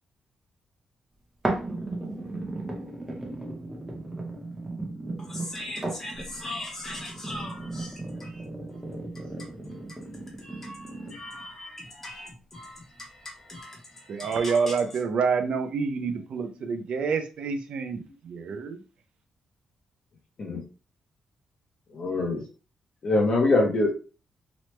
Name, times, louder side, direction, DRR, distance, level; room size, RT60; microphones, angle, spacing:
sound 1, 1.4-11.4 12.0-12.1, right 2 dB, 10° right, 0.7 m, -35 dB
voice 1, 5.2-8.4 10.4-14.6, left 1 dB, 15° left, 0.8 m, -40 dB
voice 2, 14.1-18.8, right 5 dB, 60° right, 0.5 m, -28 dB
voice 3, 21.9-22.4 23.0-24.0, left 2 dB, 45° left, 0.6 m, -23 dB
3.0 x 2.1 x 3.1 m
wide cardioid pair, 165°, 2 cm